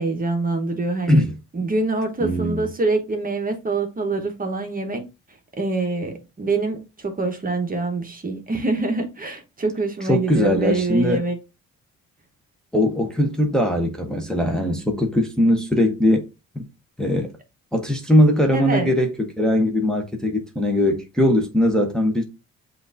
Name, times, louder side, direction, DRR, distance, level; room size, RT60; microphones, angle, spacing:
voice 1, 0.0-1.2 1.5-5.0 5.5-11.4 18.5-18.9, right 3 dB, 30° right, 1.0 m, -25 dB
voice 2, 2.2-2.7 10.1-11.2 12.7-16.2 16.5-16.6 17.0-17.3 17.7-22.2, left 1 dB, ahead, 0.9 m, -20 dB
7.7 x 2.6 x 2.5 m
cardioid pair, 90°, 30 cm